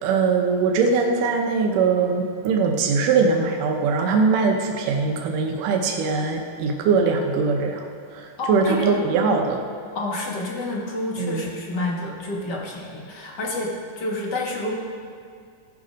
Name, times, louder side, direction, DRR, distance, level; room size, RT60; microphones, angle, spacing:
voice 1, 0.0-7.9 8.1-9.6 11.2-11.5, right 4 dB, 85° right, 2 dB, 2.5 m, -21 dB
voice 2, 8.4-9.0 9.9-13.7 14.0-14.8, left 2 dB, 45° left, -2 dB, 1.5 m, -28 dB
15.5 x 7.7 x 5.2 m, 2.2 s
omnidirectional pair, 3.7 m